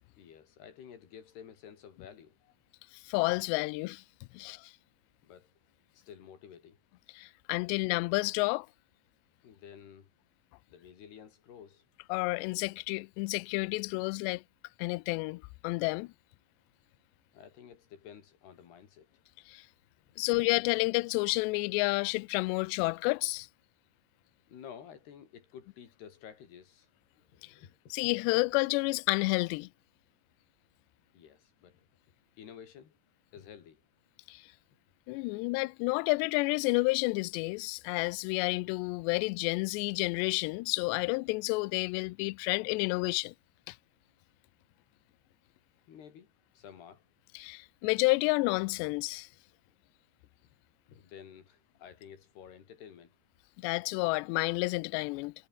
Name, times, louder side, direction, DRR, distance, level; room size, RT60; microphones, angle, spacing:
voice 1, 0.2-2.4 4.3-4.4 5.2-5.5 5.9-6.8 9.4-10.1 10.7-11.8 17.3-19.1 20.1-20.2 24.5-26.9 27.2-27.9 31.1-31.9 32.4-33.0 33.3-33.8 45.9-47.0 49.3-49.8 50.4-50.6 50.9-53.2, left 8 dB, 60° left, 5.1 m, -52 dB
voice 2, 3.0-4.0 4.3-4.7 7.2-8.7 12.1-14.4 14.8-16.1 19.5-19.6 20.2-23.5 27.9-29.7 34.3-34.4 35.1-43.3 43.7-43.8 47.4-49.3 53.6-55.3, left 26 dB, 90° left, 2.4 m, -30 dB
omnidirectional pair, 5.5 m